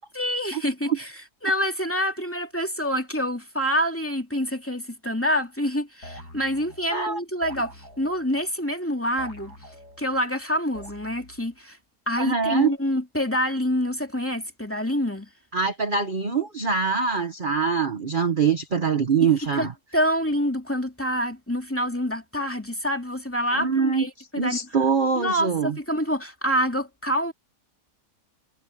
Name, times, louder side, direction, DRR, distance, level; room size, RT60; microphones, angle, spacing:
voice 1, 0.1-1.1 1.4-9.5 10.0-11.8 12.1-15.3 19.5-19.7 19.9-24.7 25.2-27.3, equal, 10° left, 2.4 m, -26 dB
sound 1, 6.0-7.0 7.4-8.4 9.2-10.2 10.7-11.5, equal, 80° left, 8.7 m, -44 dB
voice 2, 12.2-12.7 15.5-19.7 23.5-24.1 24.3-25.7, right 5 dB, 35° right, 1.2 m, -23 dB
omnidirectional pair, 1.7 m